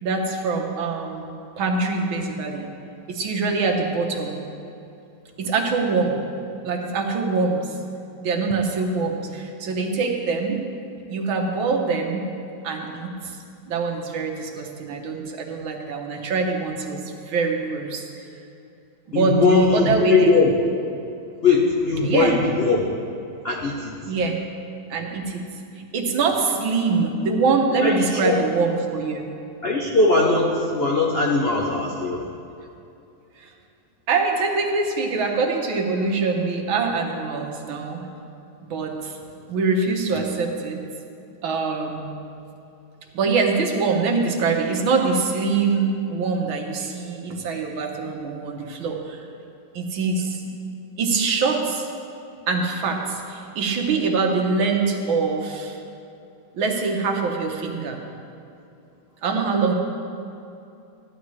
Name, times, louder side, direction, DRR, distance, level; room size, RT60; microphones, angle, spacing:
voice 1, 0.0-1.3 1.6-2.7 3.1-4.4 5.4-6.2 6.6-7.7 8.2-10.6 11.1-12.3 12.6-13.4 13.6-18.0 19.1-20.3 22.0-22.3 24.0-24.4 24.9-25.4 25.8-29.3 33.4-33.5 34.1-38.1 38.6-39.2 39.5-40.8 41.4-42.1 43.1-49.2 49.7-50.4 51.0-51.9 52.5-55.8 56.5-58.0 59.2-59.7, right 4 dB, 75° right, 1 dB, 1.8 m, -24 dB
voice 2, 19.1-20.5 21.4-22.9 23.4-24.0 27.8-28.4 29.6-32.2, left 3 dB, 75° left, -2 dB, 0.5 m, -20 dB
13.5 x 11.0 x 3.1 m, 2.7 s
omnidirectional pair, 2.3 m